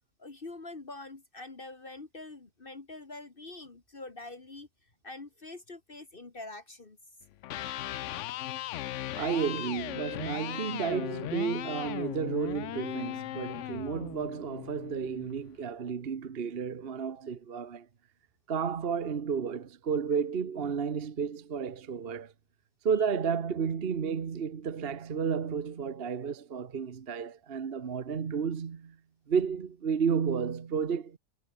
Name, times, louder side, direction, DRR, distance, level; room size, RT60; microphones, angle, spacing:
voice 1, 0.2-4.7 5.0-7.0, left 2 dB, 40° left, 2.1 m, -45 dB
Electric guitar, 7.3-15.4, left 13 dB, 70° left, 0.9 m, -38 dB
voice 2, 9.2-17.9 18.5-22.3 22.8-29.0 29.3-31.2, right 6 dB, 45° right, 1.3 m, -32 dB
omnidirectional pair, 1.4 m